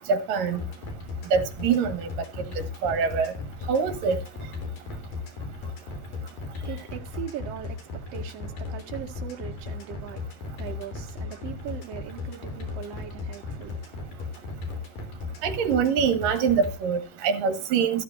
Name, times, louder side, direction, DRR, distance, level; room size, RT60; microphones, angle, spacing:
voice 1, 0.1-0.6 1.3-2.1 2.8-3.3 3.7-4.2 15.4-18.0, right 6 dB, 75° right, 3.5 m, -24 dB
sound 1, 0.6-16.7, left 4 dB, 70° left, 5.0 m, -35 dB
voice 2, 6.4-14.4, right 9 dB, 50° right, 2.8 m, -40 dB
14.0 x 13.5 x 2.6 m
omnidirectional pair, 3.9 m